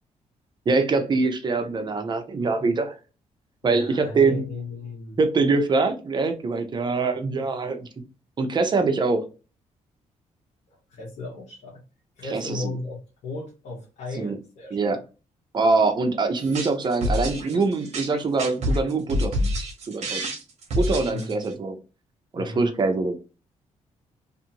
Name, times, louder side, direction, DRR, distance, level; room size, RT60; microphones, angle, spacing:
voice 1, 0.7-3.0 3.6-4.4 5.2-7.9 8.4-9.2 12.3-12.7 14.2-14.4 14.7-15.0 15.5-20.2 20.8-21.7 22.3-23.2, right 3 dB, 35° right, 0.6 m, -23 dB
voice 2, 3.6-5.2 10.9-11.8 12.2-15.0 21.1-21.6 22.4-22.7, left 3 dB, 70° left, 1.0 m, -36 dB
sound 1, 16.4-21.5, equal, 60° right, 0.9 m, -27 dB
2.6 x 2.6 x 2.8 m
cardioid pair, 100°, 13 cm